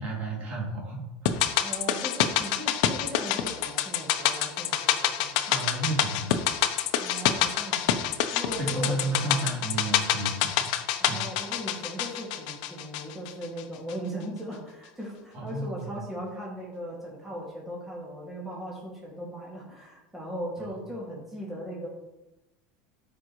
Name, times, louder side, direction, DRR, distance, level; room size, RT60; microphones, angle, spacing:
voice 1, 0.0-1.4 5.5-6.4 8.6-10.7 11.1-11.2 15.3-15.9 20.6-20.8, right 2 dB, 40° right, -2 dB, 2.6 m, -32 dB
sound 1, 1.3-13.6 13.9-14.0, left 10 dB, 70° left, 0.7 m, -27 dB
voice 2, 1.6-5.4 7.0-8.0 8.3-9.6 11.0-21.9, equal, 10° right, -5 dB, 2.1 m, -38 dB
13.0 x 5.1 x 3.1 m, 1.0 s
supercardioid pair, 140°, 4 cm